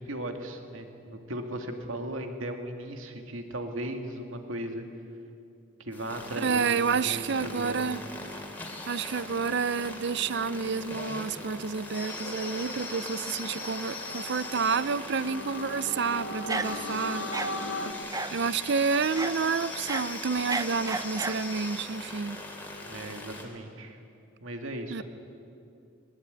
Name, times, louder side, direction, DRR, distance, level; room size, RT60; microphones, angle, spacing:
voice 1, 0.0-4.8 5.8-7.9 22.9-24.0 24.4-25.0, right 1 dB, 75° right, 2.4 m, -37 dB
sound 1, 5.9-23.4, left 2 dB, 10° left, 2.8 m, -40 dB
voice 2, 6.4-8.0 8.9-17.3 18.3-22.4 24.9-25.0, right 5 dB, 55° right, 0.5 m, -29 dB
sound 2, 12.2-17.9, left 1 dB, 70° left, 1.5 m, -39 dB
sound 3, 16.5-17.0 17.3-17.5 18.1-18.4 19.2-19.4 19.7-21.5, right 3 dB, 15° right, 0.7 m, -33 dB
21.0 x 20.5 x 9.5 m
head